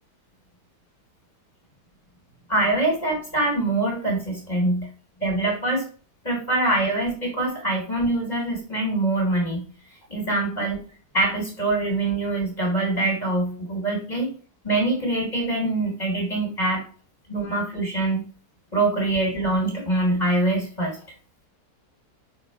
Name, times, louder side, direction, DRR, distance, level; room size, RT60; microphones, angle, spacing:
voice 1, 2.5-4.9 5.2-5.8 6.2-9.6 10.1-10.8 11.1-14.3 14.6-16.8 17.3-18.2 18.7-21.0, right 2 dB, 25° left, -1 dB, 3.6 m, -24 dB
7.7 x 5.0 x 5.2 m, 0.40 s
omnidirectional pair, 1.8 m